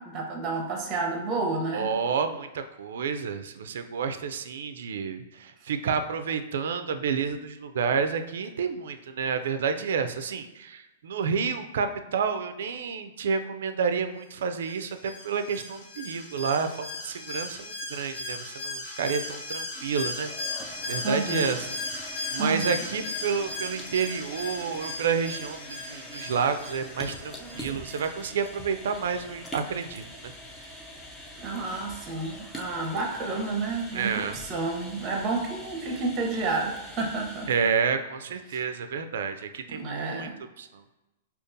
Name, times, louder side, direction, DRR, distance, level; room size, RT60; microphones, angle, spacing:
voice 1, 0.0-1.9 21.0-21.5 22.4-22.8 27.4-27.8 31.4-37.5 38.5-38.6 39.7-40.3, right 3 dB, 20° right, 1 dB, 0.7 m, -30 dB
voice 2, 1.7-20.3 20.9-30.3 33.9-34.4 37.5-40.3 40.6-40.8, right 6 dB, 70° right, 8 dB, 0.3 m, -30 dB
Alarm, 14.6-28.1 28.4-28.5, left 2 dB, 55° left, 0.8 m, -37 dB
sound 1, 19.7-37.9, left 1 dB, 10° left, 0.4 m, -44 dB
5.1 x 2.3 x 2.6 m, 1.0 s
hypercardioid pair, 170°, 0 cm